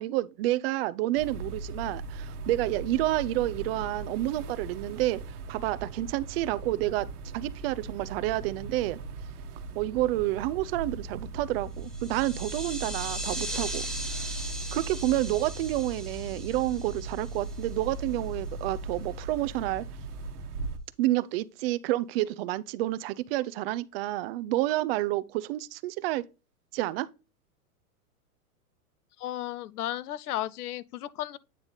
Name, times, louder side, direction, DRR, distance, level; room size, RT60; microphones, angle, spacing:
voice 1, 0.0-5.2 5.5-9.0 9.8-13.9 14.1-14.3 14.7-19.9 21.0-26.2 26.7-27.1, right 16 dB, 45° right, 0.5 m, -29 dB
sound 1, 1.2-20.8, right 2 dB, 75° right, 1.3 m, -39 dB
sound 2, 11.8-17.9, right 1 dB, ahead, 1.0 m, -39 dB
voice 2, 29.2-31.4, left 13 dB, 80° left, 0.6 m, -34 dB
8.9 x 3.3 x 4.0 m
hypercardioid pair, 125°, 45 cm